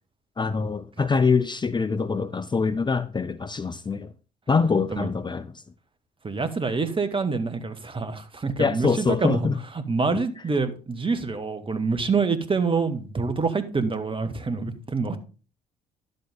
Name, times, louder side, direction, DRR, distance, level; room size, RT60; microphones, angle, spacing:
voice 1, 0.4-4.1 4.5-5.5 8.6-9.6 10.1-10.2, left 5 dB, 20° left, 0.6 m, -24 dB
voice 2, 6.2-9.5 9.9-15.2, right 4 dB, 25° right, 1.7 m, -26 dB
11.0 x 8.1 x 3.7 m
figure-of-eight pair, 50°, 20 cm